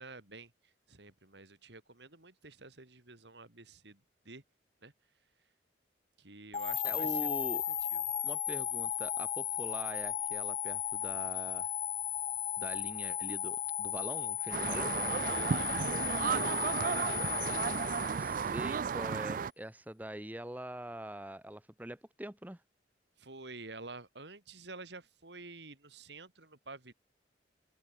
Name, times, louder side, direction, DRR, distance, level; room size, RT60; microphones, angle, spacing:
voice 1, 0.0-4.4 4.8-4.9 6.2-7.3 7.7-8.0 15.2-17.5 23.2-26.9, right 3 dB, 65° right, 3.1 m, -50 dB
sound 1, 6.5-18.7, left 9 dB, 35° left, 0.6 m, -35 dB
voice 2, 6.8-7.6 8.2-11.7 12.6-15.0 18.1-22.6, right 1 dB, 10° right, 1.0 m, -43 dB
sound 2, 14.5-19.5, right 6 dB, 45° right, 0.3 m, -33 dB
open air
head